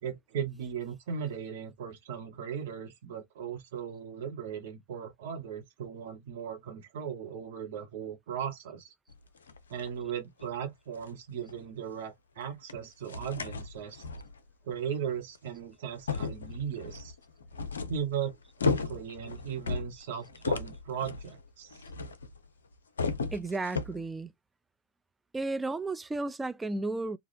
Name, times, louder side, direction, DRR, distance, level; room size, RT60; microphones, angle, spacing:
voice 1, 0.0-8.9 9.7-14.1 14.6-17.1 17.9-18.3 18.6-21.8, right 8 dB, 55° right, 1.1 m, -37 dB
sound 1, 9.1-9.9 10.4-10.5 10.9-11.1 11.5-11.6 12.7-12.8 13.1-14.4 15.3-15.4 15.9-22.5 22.7-24.0, left 4 dB, 70° left, 0.5 m, -35 dB
voice 2, 23.3-24.3 25.3-27.2, right 2 dB, 10° right, 0.3 m, -33 dB
3.2 x 2.3 x 2.6 m
figure-of-eight pair, 90°, 0 cm